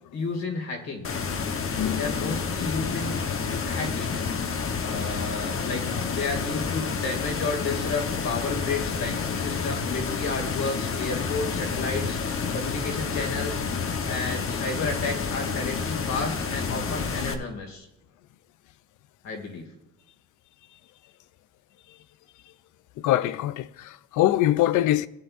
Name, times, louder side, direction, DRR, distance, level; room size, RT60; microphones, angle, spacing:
voice 1, 0.1-1.1 2.0-3.1 3.6-13.6 13.9-17.9 19.2-19.7, left 4 dB, 60° left, 2.4 m, -32 dB
sound 1, 1.0-17.3, left 5 dB, 45° left, 1.1 m, -29 dB
voice 2, 1.8-2.4 4.8-5.2 23.0-25.1, left 14 dB, 80° left, 0.5 m, -24 dB
17.5 x 7.8 x 2.6 m
cardioid pair, 90°, 30 cm